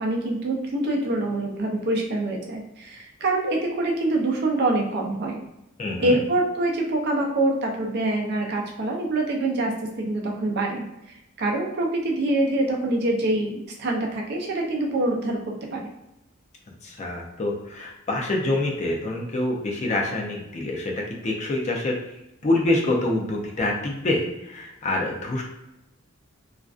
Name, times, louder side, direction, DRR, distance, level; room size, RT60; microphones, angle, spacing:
voice 1, 0.0-5.4 6.0-9.7 10.0-15.9, right 2 dB, 55° right, 1 dB, 0.5 m, -25 dB
voice 2, 5.8-6.2 16.8-20.9 21.2-22.0 22.4-25.4, left 2 dB, 35° left, 0 dB, 0.4 m, -26 dB
2.4 x 2.2 x 2.3 m, 0.87 s
head